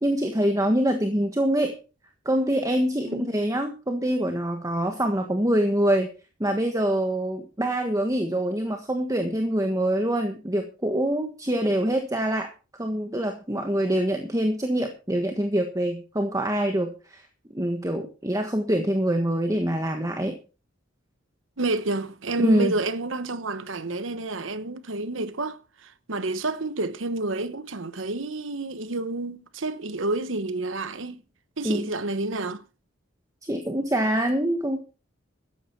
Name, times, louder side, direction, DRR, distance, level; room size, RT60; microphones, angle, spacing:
voice 1, 0.0-1.8 2.2-6.1 6.4-12.5 12.8-17.2 17.5-20.4 22.4-22.7 31.6-31.8 33.4-34.8, right 1 dB, 15° right, 1.4 m, -25 dB
voice 2, 21.6-31.2 31.6-32.6, right 2 dB, 80° right, 1.1 m, -29 dB
13.5 x 10.5 x 4.6 m
head